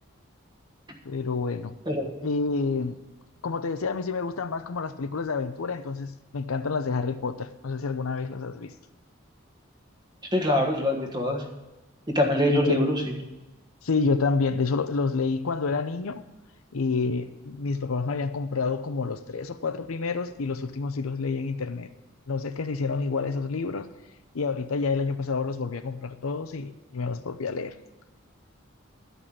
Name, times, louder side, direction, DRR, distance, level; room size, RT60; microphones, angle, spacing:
voice 1, 1.0-1.7 2.2-3.0 3.4-8.7 12.5-12.8 13.8-16.2 16.7-21.9 22.3-23.9 24.3-27.7, left 4 dB, 90° left, 11 dB, 0.7 m, -28 dB
voice 2, 10.3-11.5 12.1-13.0, left 1 dB, 20° right, 2 dB, 1.4 m, -24 dB
12.5 x 5.5 x 8.4 m, 1.1 s
head